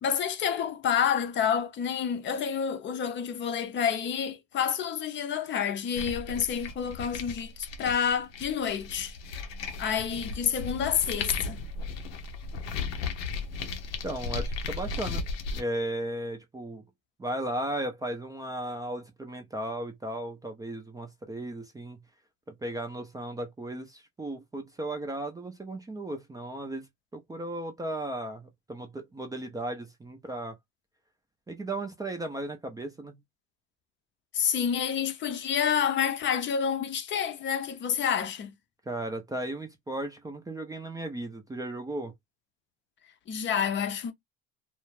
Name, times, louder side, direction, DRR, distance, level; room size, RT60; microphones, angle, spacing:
voice 1, 0.0-9.2 9.8-11.6 34.3-38.5 43.3-44.1, left 8 dB, 40° left, 0.6 m, -28 dB
sound 1, 5.9-15.6, left 4 dB, 80° left, 0.7 m, -36 dB
voice 2, 14.0-15.3 15.5-16.8 17.2-22.0 22.5-26.9 27.1-30.6 31.5-33.2 38.9-42.1, right 1 dB, 10° right, 0.4 m, -35 dB
2.4 x 2.1 x 3.1 m
supercardioid pair, 95°, 30 cm